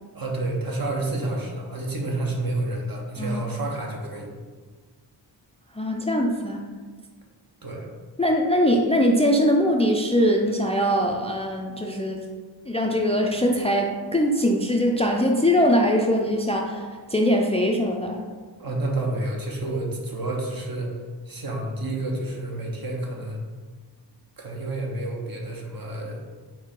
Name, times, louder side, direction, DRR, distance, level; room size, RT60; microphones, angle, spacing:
voice 1, 0.1-4.3 7.6-7.9 18.6-20.9 21.3-23.4 24.4-26.2, right 2 dB, 50° right, -1 dB, 1.0 m, -29 dB
voice 2, 5.8-6.6 8.2-12.2 12.7-18.2, equal, 15° left, 1 dB, 0.4 m, -22 dB
4.5 x 2.8 x 3.7 m, 1.5 s
cardioid pair, 50°, 44 cm